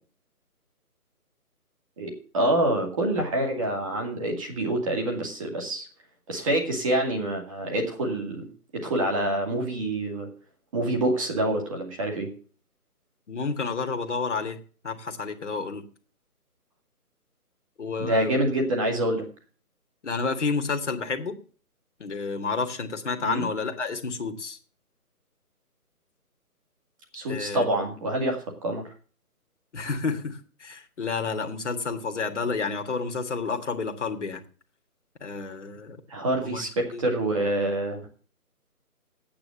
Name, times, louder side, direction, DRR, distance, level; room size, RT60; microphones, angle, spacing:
voice 1, 2.0-5.9 6.3-8.5 8.7-10.3 10.7-12.3 18.0-19.2 23.2-23.5 27.1-28.8 36.1-38.1, right 1 dB, 20° right, 1 dB, 2.3 m, -26 dB
voice 2, 13.3-14.6 14.8-15.8 17.8-18.3 20.0-21.4 22.0-24.6 27.3-27.7 29.7-34.4 35.2-36.0 36.4-37.1, left 4 dB, 50° left, 6 dB, 1.8 m, -30 dB
8.7 x 8.6 x 7.6 m, 0.41 s
figure-of-eight pair, 165°, 46 cm